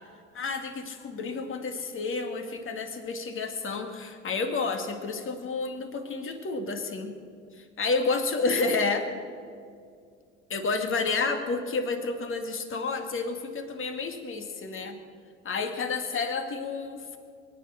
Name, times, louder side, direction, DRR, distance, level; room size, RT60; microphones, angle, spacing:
voice 1, 0.3-7.1 7.8-9.1 10.5-15.0 15.4-17.2, left 4 dB, 35° left, 6 dB, 2.2 m, -30 dB
22.0 x 10.0 x 6.5 m, 2.3 s
hypercardioid pair, 85°, 37 cm